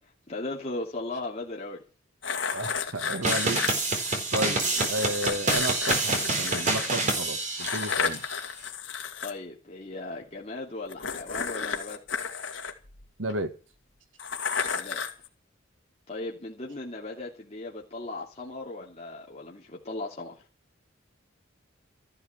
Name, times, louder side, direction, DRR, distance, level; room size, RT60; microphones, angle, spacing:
voice 1, 0.3-1.8 9.2-12.0 14.7-15.0 16.1-20.4, left 2 dB, 35° left, 2.8 m, -37 dB
sound 1, 2.2-3.7 4.8-7.0 7.6-9.3 10.9-13.3 14.2-15.3, left 6 dB, 70° left, 2.2 m, -32 dB
voice 2, 2.5-3.6 3.9-8.2 13.2-13.6, right 1 dB, 70° right, 2.0 m, -33 dB
sound 2, 3.2-8.2, right 2 dB, 40° right, 4.1 m, -27 dB
14.0 x 11.5 x 7.3 m
head